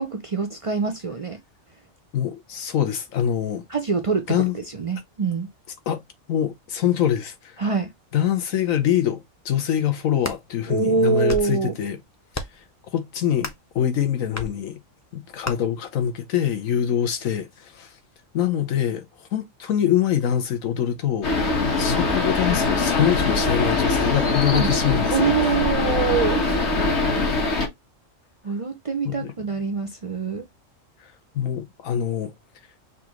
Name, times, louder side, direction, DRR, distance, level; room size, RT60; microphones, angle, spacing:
voice 1, 0.0-1.4 3.7-5.5 7.6-7.9 10.7-11.7 24.5-24.7 25.1-26.4 28.4-30.5, right 5 dB, 55° right, 0.3 m, -24 dB
voice 2, 2.1-3.7 4.3-4.5 5.9-6.0 6.3-7.6 8.1-12.0 12.3-12.4 12.9-14.8 15.1-17.9 18.3-19.1 19.3-25.5 29.0-29.3 31.3-32.3, left 10 dB, 85° left, 1.3 m, -24 dB
sound 1, 10.0-10.4 11.1-11.6 12.3-12.7 13.4-13.7 14.3-14.5 15.4-15.6, left 1 dB, 25° left, 0.3 m, -32 dB
sound 2, 21.2-27.7, left 3 dB, 60° left, 1.7 m, -22 dB
5.9 x 2.6 x 3.0 m
omnidirectional pair, 1.3 m